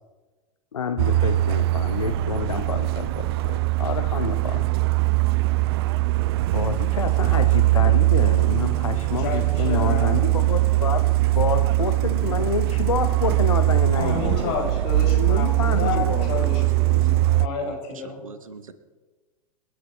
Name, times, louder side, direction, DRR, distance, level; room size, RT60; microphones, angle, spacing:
voice 1, 0.7-4.7 5.9-6.1 6.5-11.0 11.3-14.5 15.1-16.3, left 7 dB, 70° left, 9 dB, 0.8 m, -28 dB
Truck, 1.0-17.5, right 18 dB, 45° right, 0.5 m, -21 dB
voice 2, 9.2-10.2 13.9-18.2, left 5 dB, 45° left, 0 dB, 6.1 m, -31 dB
voice 3, 16.4-17.1 17.7-17.8 18.0-18.7, right 5 dB, 70° right, 11 dB, 1.4 m, -39 dB
28.5 x 11.0 x 4.2 m, 1.3 s
figure-of-eight pair, 90°, 18 cm